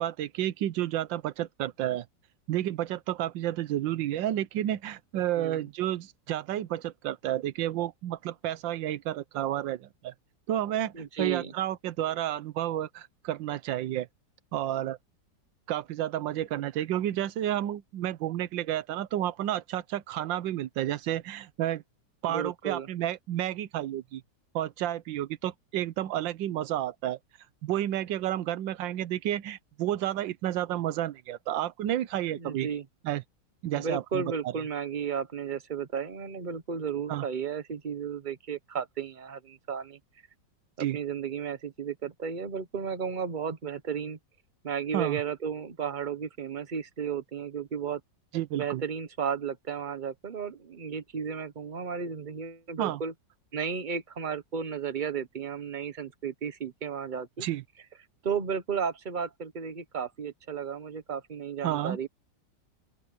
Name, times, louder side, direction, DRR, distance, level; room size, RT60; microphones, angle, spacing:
voice 1, 0.0-2.1 2.5-10.1 10.5-14.1 14.5-15.0 15.7-21.8 22.2-24.2 24.5-27.2 27.6-32.7 33.0-33.2 33.6-34.5 37.1-37.3 40.8-41.0 44.9-45.2 48.3-48.8 52.8-53.0 57.4-57.6 61.6-62.0, right 12 dB, 85° right, 1.5 m, -31 dB
voice 2, 10.9-11.5 22.3-22.9 32.3-32.8 33.7-40.0 40.8-44.2 44.6-48.0 48.6-53.1 53.5-57.5 58.2-62.1, right 6 dB, 30° right, 1.2 m, -34 dB
open air
omnidirectional pair, 2.0 m